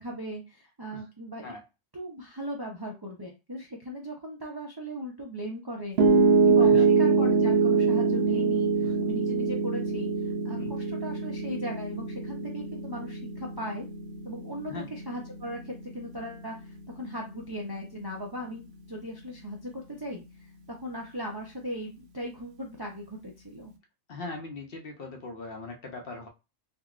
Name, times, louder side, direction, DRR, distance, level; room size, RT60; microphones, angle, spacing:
voice 1, 0.0-1.5 1.9-6.0 6.5-13.9 14.2-23.7, equal, 35° right, -1 dB, 0.4 m, -38 dB
Piano, 6.0-18.2, right 4 dB, 65° right, 0.8 m, -25 dB
voice 2, 14.7-15.0 24.1-26.3, left 3 dB, 60° left, 2 dB, 0.8 m, -40 dB
3.7 x 2.2 x 2.4 m, 0.27 s
omnidirectional pair, 1.2 m